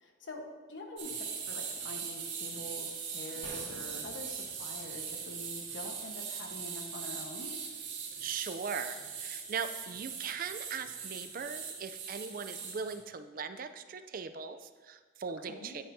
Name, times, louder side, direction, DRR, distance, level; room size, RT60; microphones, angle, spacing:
voice 1, 0.0-7.5 15.5-15.8, left 1 dB, 70° left, 2 dB, 1.2 m, -45 dB
sound 1, 1.0-13.0, right 6 dB, 70° right, 1.8 m, -40 dB
sound 2, 3.4-6.8 7.1-7.2, equal, 25° left, 1.8 m, -53 dB
voice 2, 8.2-15.8, right 6 dB, 45° right, 10 dB, 0.4 m, -39 dB
10.0 x 9.4 x 2.7 m, 1.5 s
head